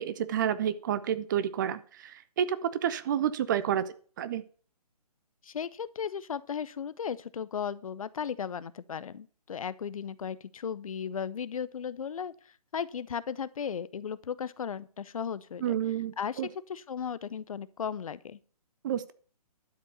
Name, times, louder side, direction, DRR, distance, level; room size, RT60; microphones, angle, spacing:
voice 1, 0.0-3.8 4.2-4.4 15.6-16.5 18.8-19.1, right 9 dB, 30° right, 15 dB, 0.7 m, -30 dB
voice 2, 5.4-16.4 16.7-18.4, left 7 dB, 60° left, 17 dB, 0.7 m, -36 dB
12.0 x 5.3 x 6.7 m, 0.43 s
figure-of-eight pair, 145°, 20 cm